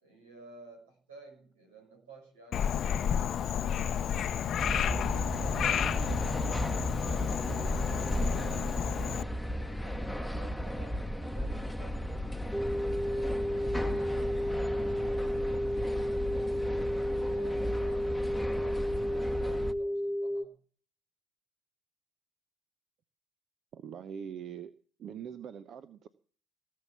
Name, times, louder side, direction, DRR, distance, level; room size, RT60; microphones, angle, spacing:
voice 1, 0.0-4.3 4.7-12.1 13.0-16.6 17.1-20.5, right 3 dB, 80° right, 2 dB, 5.9 m, -54 dB
Frog, 2.5-9.2, left 8 dB, 50° left, 0.7 m, -31 dB
sound 1, 4.6-19.7, equal, ahead, 1.3 m, -35 dB
sound 2, 12.5-20.4, equal, 20° right, 1.5 m, -32 dB
voice 2, 23.7-24.7 25.0-26.1, right 8 dB, 50° right, 13 dB, 0.9 m, -42 dB
18.0 x 7.6 x 7.0 m, 0.41 s
figure-of-eight pair, 55°, 0 cm